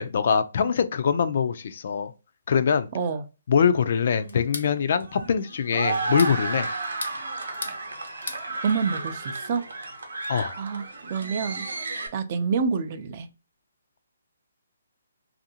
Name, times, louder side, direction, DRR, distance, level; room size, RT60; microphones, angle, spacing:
voice 1, 0.0-2.1 2.5-2.9 3.5-6.7 10.3-10.5, left 6 dB, 55° left, 0.3 m, -23 dB
voice 2, 2.9-3.2 8.6-9.6 10.6-10.8 11.1-11.7 12.1-13.3, right 5 dB, 40° right, 0.4 m, -27 dB
sound 1, 4.1-12.1, right 3 dB, 90° right, 0.8 m, -33 dB
sound 2, 4.3-4.7 5.9-6.4 6.8-7.8 8.0-8.4, left 3 dB, 75° left, 0.7 m, -36 dB
2.6 x 2.5 x 2.7 m
hypercardioid pair, 155°, 0 cm